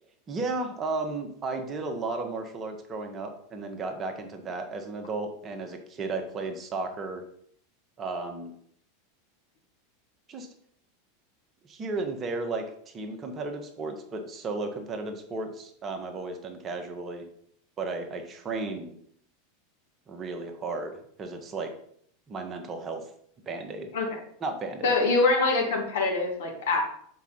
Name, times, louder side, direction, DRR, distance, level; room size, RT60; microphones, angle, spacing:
voice 1, 0.3-7.2 8.0-8.5 10.3-10.5 11.7-17.3 17.8-19.0 20.1-21.7 22.3-23.1 23.5-23.9 24.4-24.9, right 3 dB, 25° right, 4 dB, 1.2 m, -34 dB
voice 2, 24.8-26.8, left 3 dB, 60° left, 0 dB, 2.0 m, -24 dB
7.1 x 4.8 x 4.1 m, 0.64 s
figure-of-eight pair, 85°, 0 cm